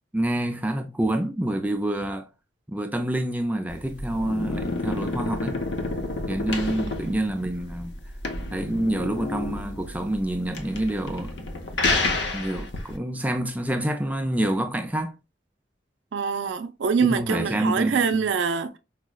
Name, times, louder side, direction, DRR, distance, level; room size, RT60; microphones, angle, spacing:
voice 1, 0.1-2.3 2.7-5.6 6.3-8.0 8.5-11.5 12.3-15.1 17.0-18.3, right 1 dB, 10° right, 0.3 m, -27 dB
sound 1, 3.7-13.0, left 2 dB, 65° left, 0.6 m, -29 dB
voice 2, 16.1-18.8, right 5 dB, 75° right, 0.4 m, -24 dB
4.6 x 2.1 x 2.2 m
head